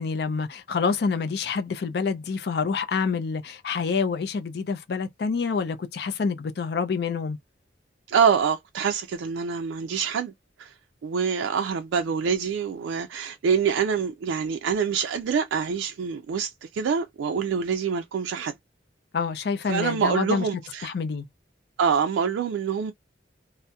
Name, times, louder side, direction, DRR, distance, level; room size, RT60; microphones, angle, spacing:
voice 1, 0.0-7.4 19.1-20.5 20.8-21.3, left 5 dB, 60° left, 0.4 m, -27 dB
voice 2, 8.1-10.3 10.6-10.7 11.0-18.5 19.7-20.9 21.8-22.9, right 6 dB, 85° right, 0.3 m, -25 dB
2.7 x 2.0 x 2.2 m
head